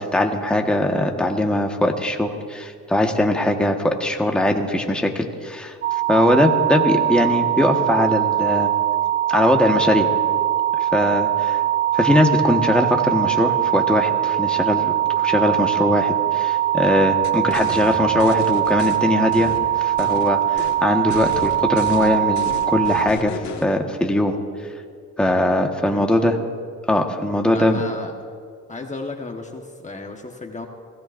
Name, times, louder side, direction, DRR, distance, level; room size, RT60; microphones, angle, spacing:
voice 1, 0.0-5.7 6.1-8.7 9.3-10.1 10.9-11.6 11.9-24.3 25.2-26.3 26.9-27.8, left 1 dB, 5° left, 2 dB, 1.4 m, -20 dB
sound 1, 5.8-23.1, right 13 dB, 45° right, 1.1 m, -21 dB
sound 2, 17.2-19.0 19.3-20.3 20.6-20.8 21.1-23.7, left 6 dB, 70° left, 1.9 m, -35 dB
voice 2, 25.8-26.3 27.5-28.1 28.7-30.7, left 3 dB, 25° left, 3 dB, 1.3 m, -34 dB
29.0 x 17.5 x 2.6 m, 2.1 s
cardioid pair, 90°, 30 cm